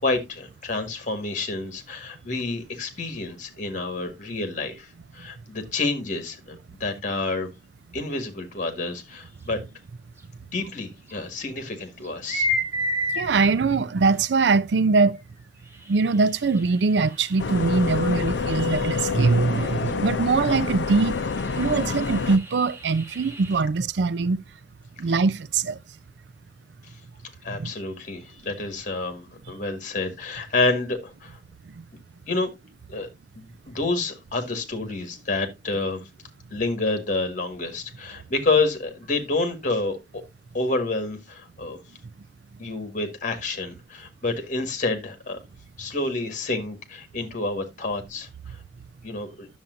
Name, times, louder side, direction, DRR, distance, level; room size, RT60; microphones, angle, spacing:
voice 1, 0.0-6.6 6.8-7.5 7.9-9.6 10.5-12.5 27.4-31.4 32.3-32.5 32.9-33.1 33.4-36.0 36.5-40.2 40.5-41.8 42.6-45.4 45.8-48.6 49.0-49.5, left 3 dB, 45° left, 1.9 m, -28 dB
sound 1, 10.2-10.3 11.1-11.2 12.0-13.3 14.4-14.5 15.6-19.9 20.4-20.5 20.8-23.6, left 1 dB, 15° right, 1.7 m, -33 dB
voice 2, 13.1-15.2 15.9-21.2 21.6-24.4 25.0-25.8 27.5-27.7, right 4 dB, 70° right, 0.5 m, -22 dB
sound 2, 17.4-22.4, left 5 dB, 75° left, 0.6 m, -27 dB
10.5 x 7.1 x 2.6 m
head